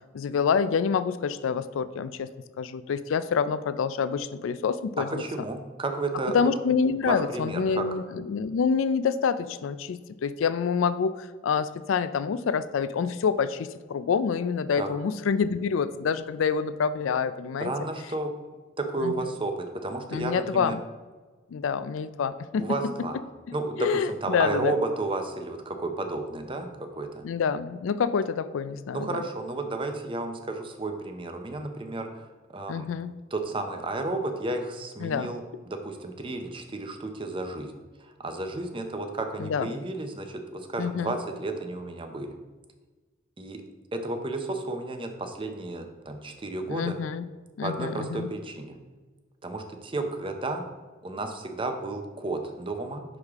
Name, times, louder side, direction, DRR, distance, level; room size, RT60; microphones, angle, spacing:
voice 1, 0.1-2.3 2.6-5.2 6.3-17.7 19.0-19.1 20.1-20.8 21.5-22.7 23.5-24.7 27.2-29.2 32.7-33.1 35.0-35.3 39.4-39.7 40.8-41.2 46.7-47.3 47.6-48.3, left 6 dB, 80° left, 14 dB, 0.4 m, -27 dB
voice 2, 5.1-6.5 7.0-7.8 14.8-14.9 17.6-18.3 18.8-20.8 22.6-23.2 23.5-27.2 28.9-32.2 32.5-32.9 33.3-37.7 38.0-42.3 43.4-43.6 43.9-47.0 47.6-48.8 49.4-50.6 51.0-53.0, right 2 dB, 25° right, 5 dB, 0.6 m, -32 dB
6.4 x 4.9 x 3.5 m, 1.3 s
head